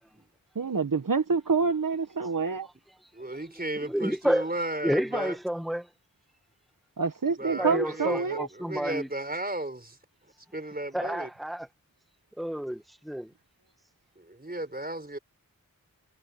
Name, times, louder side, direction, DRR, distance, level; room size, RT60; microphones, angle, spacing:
voice 1, 0.5-2.7 7.0-8.5, right 4 dB, 70° right, 1.2 m, -27 dB
voice 2, 3.1-5.4 7.4-10.0 10.5-11.3 14.2-15.2, right 1 dB, 25° right, 5.0 m, -35 dB
voice 3, 3.8-4.5 4.8-5.8 7.6-9.1 10.9-11.7 12.4-13.3, equal, ahead, 1.5 m, -29 dB
wide cardioid pair, 45°, 35 cm